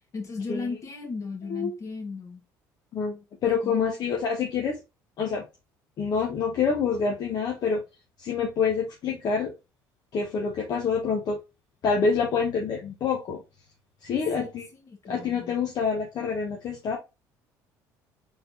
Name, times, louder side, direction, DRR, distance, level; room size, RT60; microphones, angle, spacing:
voice 1, 0.1-2.4 3.6-4.1 14.4-15.5, left 4 dB, 40° left, 1.7 m, -36 dB
voice 2, 2.9-4.7 5.2-5.5 6.0-7.8 8.2-9.5 10.1-11.4 11.8-13.4 14.0-14.6 15.1-17.0, left 5 dB, 55° left, 1.0 m, -27 dB
4.1 x 3.6 x 2.7 m
supercardioid pair, 90°, 8 cm